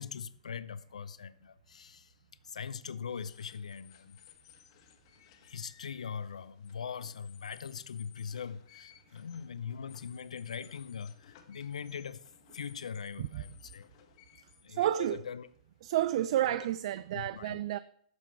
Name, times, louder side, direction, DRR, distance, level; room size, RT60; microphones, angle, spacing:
voice 1, 0.0-2.1 2.5-4.2 5.4-12.2 12.5-13.9 14.6-15.5 16.5-16.6 17.1-17.6, left 6 dB, 80° left, 0.6 m, -41 dB
sound 1, 3.1-15.8, left 10 dB, 50° left, 1.5 m, -60 dB
voice 2, 14.7-15.2 15.8-17.8, right 12 dB, 55° right, 0.4 m, -30 dB
10.5 x 7.0 x 4.7 m
hypercardioid pair, 120°, 4 cm